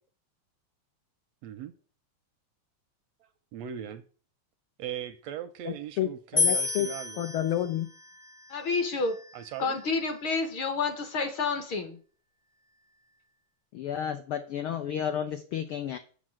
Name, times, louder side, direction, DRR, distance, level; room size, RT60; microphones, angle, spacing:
voice 1, 1.4-1.7 3.5-4.0 4.8-7.2 9.3-9.8, right 10 dB, 80° right, 1.7 m, -39 dB
voice 2, 5.6-6.9 7.2-7.9 13.7-16.0, left 10 dB, 75° left, 1.2 m, -31 dB
sound 1, 6.4-9.6, left 4 dB, 30° left, 0.8 m, -31 dB
voice 3, 8.5-9.2 9.6-12.0, left 4 dB, 55° left, 1.6 m, -29 dB
7.3 x 6.5 x 7.6 m
omnidirectional pair, 3.3 m